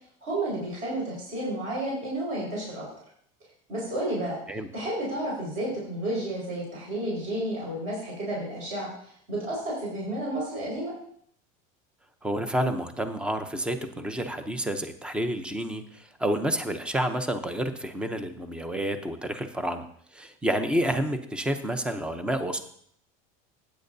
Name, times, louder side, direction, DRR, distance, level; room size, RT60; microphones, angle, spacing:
voice 1, 0.2-2.8 3.7-4.4 4.7-8.9 9.3-10.9, right 1 dB, 45° right, -4 dB, 4.8 m, -31 dB
voice 2, 12.2-19.9 20.1-22.6, right 1 dB, 5° right, 9 dB, 0.7 m, -29 dB
15.5 x 9.1 x 2.7 m, 0.64 s
cardioid pair, 155°, 18 cm